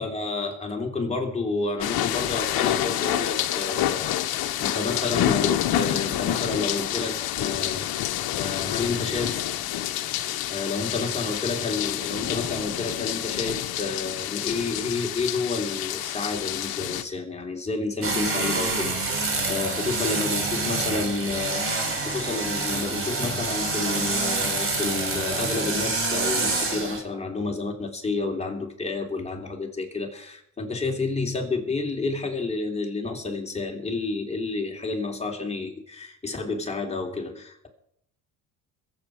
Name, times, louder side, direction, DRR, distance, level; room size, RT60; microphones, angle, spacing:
voice 1, 0.0-8.0 8.3-9.3 10.5-37.7, left 3 dB, 15° left, 3.5 m, -30 dB
sound 1, 1.8-17.0, left 13 dB, 65° left, 1.1 m, -28 dB
sound 2, 18.0-27.0, right 3 dB, 35° right, 3.6 m, -27 dB
22.5 x 8.2 x 5.0 m
supercardioid pair, 85°, 39 cm